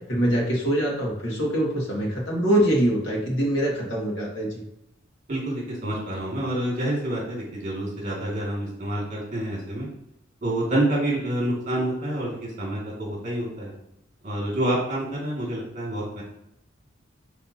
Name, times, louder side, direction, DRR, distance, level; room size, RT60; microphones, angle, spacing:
voice 1, 0.1-4.6, right 1 dB, 60° left, -3 dB, 2.2 m, -24 dB
voice 2, 5.3-9.9 10.4-13.7 14.2-16.2, right 1 dB, 40° right, -4 dB, 2.4 m, -28 dB
9.9 x 4.1 x 2.9 m, 0.82 s
head